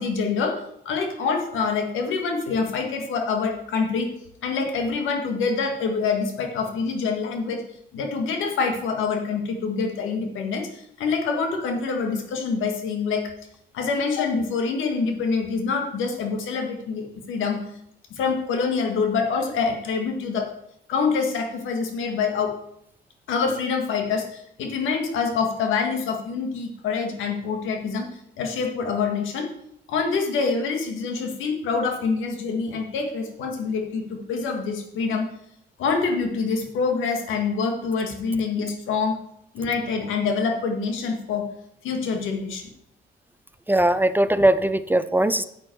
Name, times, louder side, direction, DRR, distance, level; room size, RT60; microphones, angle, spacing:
voice 1, 0.0-4.1 4.4-7.6 7.9-13.2 13.7-17.6 18.1-20.5 20.9-22.5 23.3-28.1 28.4-29.5 29.9-35.3 35.8-39.2 39.5-41.5 41.8-42.7, left 5 dB, 90° left, 4 dB, 1.9 m, -26 dB
voice 2, 43.7-45.5, right 1 dB, 10° right, 12 dB, 0.5 m, -20 dB
9.3 x 8.0 x 4.6 m, 0.75 s
cardioid pair, 90°, 20 cm